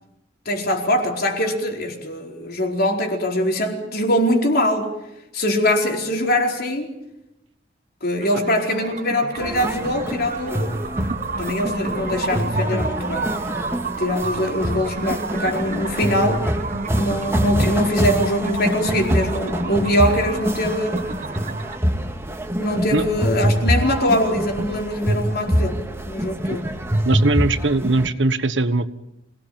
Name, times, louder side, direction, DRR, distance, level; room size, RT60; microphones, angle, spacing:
voice 1, 0.4-4.9 5.3-6.9 8.0-10.9 11.4-13.3 14.0-16.4 16.9-21.0 22.6-26.8, left 1 dB, 55° left, 2 dB, 4.6 m, -22 dB
sound 1, 8.2-21.8, right 4 dB, 45° right, 1.0 m, -32 dB
sound 2, 9.4-28.1, equal, 15° right, 2.0 m, -25 dB
voice 2, 27.0-28.9, right 2 dB, 70° right, 11 dB, 1.3 m, -20 dB
27.0 x 19.0 x 9.0 m, 0.88 s
head